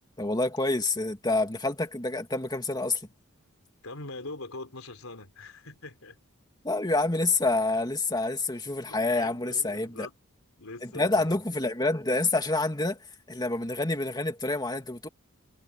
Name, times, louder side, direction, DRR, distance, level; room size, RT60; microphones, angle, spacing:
voice 1, 0.2-3.0 6.6-10.1 10.8-13.0 13.3-15.1, left 2 dB, 20° left, 2.6 m, -27 dB
voice 2, 3.8-6.2 8.8-10.1 10.6-11.4, left 2 dB, 80° left, 3.7 m, -42 dB
head